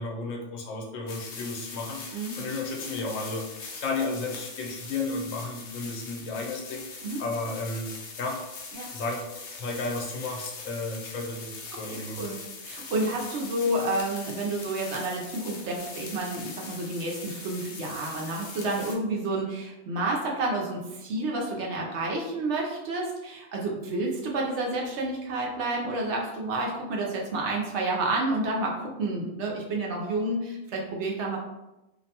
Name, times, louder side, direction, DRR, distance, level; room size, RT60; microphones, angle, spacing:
voice 1, 0.0-8.4 8.9-12.4, left 3 dB, 80° left, 1 dB, 1.0 m, -33 dB
sound 1, 1.1-19.0, left 4 dB, 65° left, 0.6 m, -42 dB
voice 2, 11.9-31.4, right 2 dB, 70° right, -1 dB, 0.8 m, -30 dB
2.6 x 2.1 x 2.7 m, 0.96 s
omnidirectional pair, 1.3 m